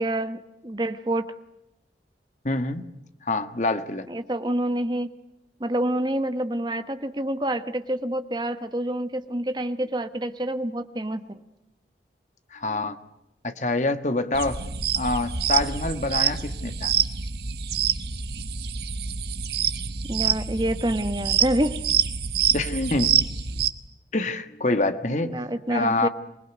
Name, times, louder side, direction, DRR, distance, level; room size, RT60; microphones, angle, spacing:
voice 1, 0.0-1.3 4.1-5.1 5.6-11.4 20.1-21.8 25.3-26.1, right 1 dB, 25° right, 10 dB, 1.1 m, -27 dB
voice 2, 2.4-2.8 3.2-4.1 12.5-13.0 13.4-14.6 14.9-16.9 22.5-23.3 24.1-25.3 25.7-26.1, left 2 dB, 40° left, 9 dB, 1.5 m, -26 dB
sound 1, 14.3-23.7, right 8 dB, 65° right, 1.2 m, -26 dB
26.5 x 20.5 x 9.3 m, 0.90 s
head